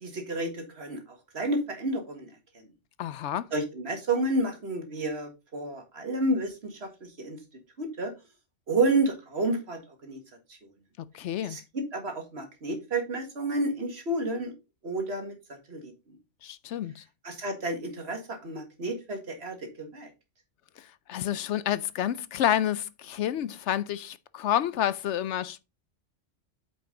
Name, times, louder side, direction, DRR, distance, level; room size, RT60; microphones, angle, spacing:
voice 1, 0.0-1.0 1.3-2.3 3.5-7.4 7.8-8.1 8.7-10.2 10.5-10.6 11.4-11.6 11.9-14.5 14.8-16.2 17.2-20.1, right 2 dB, 60° right, 2.1 m, -30 dB
voice 2, 3.0-3.5 11.0-11.6 16.4-17.0 20.8-25.6, left 11 dB, 75° left, 0.9 m, -29 dB
8.7 x 5.3 x 3.8 m
omnidirectional pair, 1.3 m